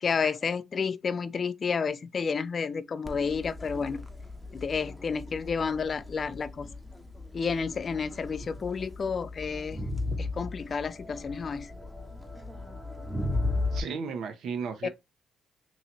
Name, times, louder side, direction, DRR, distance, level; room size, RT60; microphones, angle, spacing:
voice 1, 0.0-4.0 4.5-6.7 7.3-9.8 10.2-11.7 14.8-14.9, left 5 dB, 45° left, 0.4 m, -31 dB
Crowd, 3.1-13.8, left 2 dB, 5° left, 0.7 m, -36 dB
voice 2, 13.7-14.9, right 5 dB, 70° right, 0.8 m, -34 dB
3.0 x 2.9 x 4.0 m
cardioid pair, 90°, 0 cm